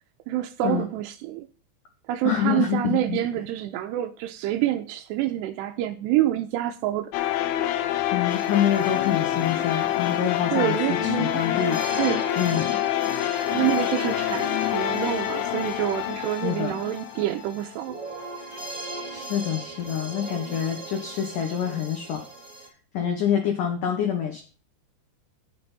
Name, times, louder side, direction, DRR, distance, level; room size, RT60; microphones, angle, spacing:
voice 1, 0.3-1.5 2.1-7.1 10.5-11.4 12.0-12.2 13.5-18.0, right 14 dB, 80° right, 2.6 m, -27 dB
voice 2, 2.2-3.2 8.1-11.8 12.4-12.8 16.4-16.8 19.1-22.2 22.9-24.4, left 9 dB, 70° left, 2.0 m, -26 dB
sound 1, 7.1-18.0, left 13 dB, 85° left, 3.3 m, -27 dB
sound 2, 8.3-22.7, right 2 dB, 10° right, 2.2 m, -40 dB
9.4 x 9.4 x 4.1 m
omnidirectional pair, 5.4 m